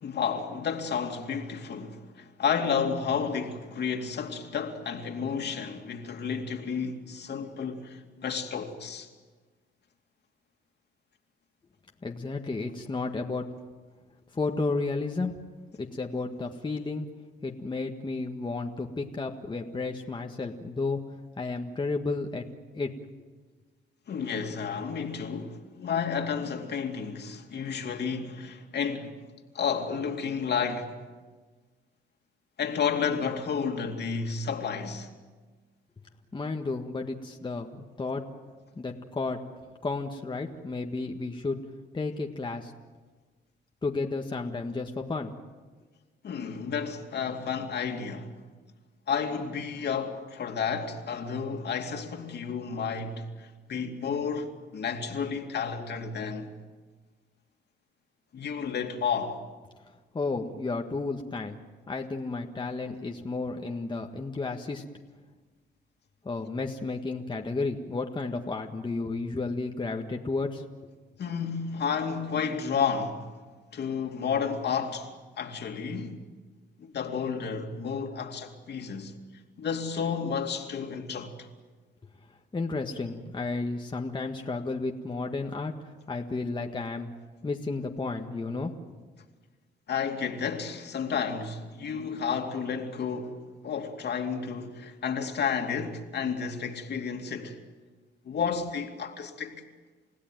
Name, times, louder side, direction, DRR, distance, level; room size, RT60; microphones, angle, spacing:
voice 1, 0.0-9.1 24.1-29.2 29.5-31.0 32.6-35.1 46.2-48.3 49.1-56.5 58.3-59.4 71.2-73.3 73.7-76.2 76.8-79.1 79.6-81.5 89.9-97.6 98.2-99.6, left 6 dB, 60° left, 2.7 m, -31 dB
voice 2, 12.0-13.5 14.3-15.4 15.8-17.2 17.4-21.0 21.4-22.4 22.7-22.9 36.3-38.2 38.8-39.4 39.8-41.6 41.9-42.7 43.8-45.3 60.1-61.6 61.9-64.8 66.3-70.6 82.5-87.1 87.4-88.7, left 3 dB, 25° left, 1.7 m, -32 dB
30.0 x 16.0 x 9.3 m
cardioid pair, 90°, 20 cm